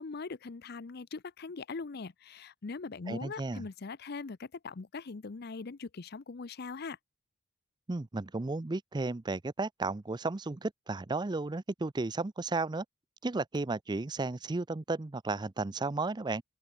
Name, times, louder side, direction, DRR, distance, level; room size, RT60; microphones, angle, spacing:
voice 1, 0.0-7.0, left 4 dB, 55° left, 0.6 m, -41 dB
voice 2, 3.1-3.6 7.9-12.8 13.2-16.4, right 3 dB, 25° right, 0.5 m, -34 dB
open air
head